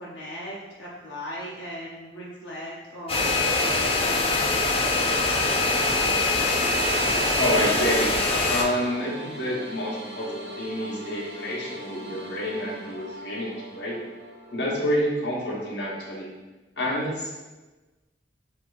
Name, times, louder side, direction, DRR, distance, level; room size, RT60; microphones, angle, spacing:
voice 1, 0.0-4.8, equal, 90° left, -6 dB, 0.9 m, -38 dB
sound 1, 3.1-8.6, left 2 dB, 35° left, 0.5 m, -23 dB
sound 2, 4.6-14.8, equal, 70° right, 1.0 m, -40 dB
voice 2, 7.4-8.1 8.5-14.0 14.5-16.3 16.8-17.4, equal, 70° left, -4 dB, 1.1 m, -28 dB
7.1 x 2.8 x 2.6 m, 1.2 s
head